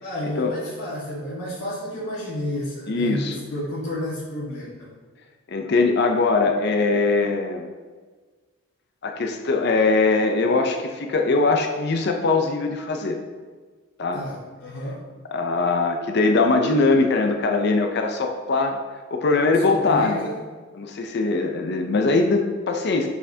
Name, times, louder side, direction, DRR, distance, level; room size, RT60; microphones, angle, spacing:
voice 1, 0.0-4.9 14.1-15.0 19.6-20.3, left 1 dB, 85° left, -8 dB, 1.5 m, -31 dB
voice 2, 2.9-3.4 5.5-7.6 9.0-13.2 14.0-14.2 15.3-18.8 19.1-20.2 20.7-23.1, left 3 dB, 50° left, 4 dB, 0.5 m, -21 dB
6.4 x 5.7 x 2.7 m, 1.4 s
head